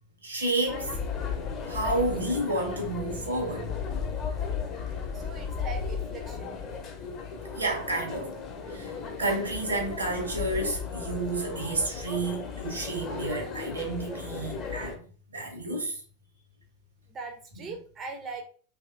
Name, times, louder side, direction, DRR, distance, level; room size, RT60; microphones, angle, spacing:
voice 1, 0.2-0.9 1.7-4.0 7.5-8.3 8.7-15.0 15.3-16.0, right 2 dB, 80° right, 1.0 m, -30 dB
sound 1, 0.7-15.0, left 6 dB, 35° left, 0.7 m, -35 dB
voice 2, 5.1-6.6 17.1-18.4, right 4 dB, 25° right, 0.5 m, -40 dB
3.0 x 2.7 x 2.3 m
figure-of-eight pair, 90°, 0 cm